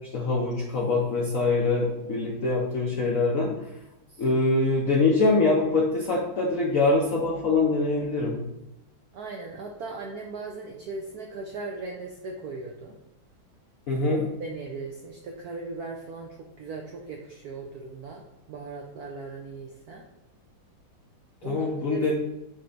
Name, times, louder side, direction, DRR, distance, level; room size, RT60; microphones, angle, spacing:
voice 1, 0.1-3.5 4.2-8.3 13.9-14.2 21.4-22.1, left 3 dB, 65° left, -2 dB, 0.8 m, -24 dB
voice 2, 9.1-12.9 14.4-18.2 18.5-20.0 21.4-22.1, right 3 dB, 75° right, 1 dB, 0.8 m, -38 dB
7.8 x 3.3 x 3.9 m, 0.91 s
omnidirectional pair, 2.3 m